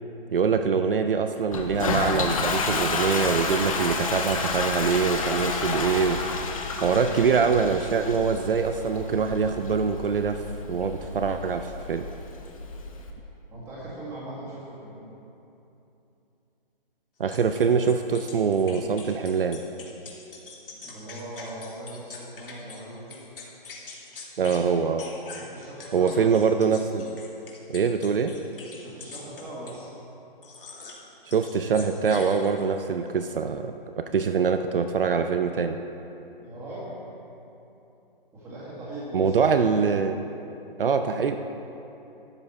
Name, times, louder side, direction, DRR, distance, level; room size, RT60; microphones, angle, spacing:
voice 1, 0.3-6.2 6.8-10.4 10.7-12.1 17.2-19.6 24.4-25.0 25.9-27.2 27.7-28.3 31.3-35.8 39.1-40.2 40.8-41.4, right 6 dB, 65° right, 7 dB, 0.6 m, -24 dB
Toilet flush, 1.5-13.1, left 4 dB, 35° left, 0.9 m, -30 dB
voice 2, 6.8-7.2 13.5-15.0 20.7-23.2 25.3-26.4 28.8-29.9 36.4-36.9 38.3-39.8, right 1 dB, 10° right, -7 dB, 1.8 m, -40 dB
sound 1, 17.3-22.8 23.1-24.6 25.0-29.8 30.4-31.0 31.3-32.8, left 4 dB, 65° left, 2.2 m, -43 dB
12.0 x 8.5 x 4.2 m, 2.9 s
hypercardioid pair, 165°, 29 cm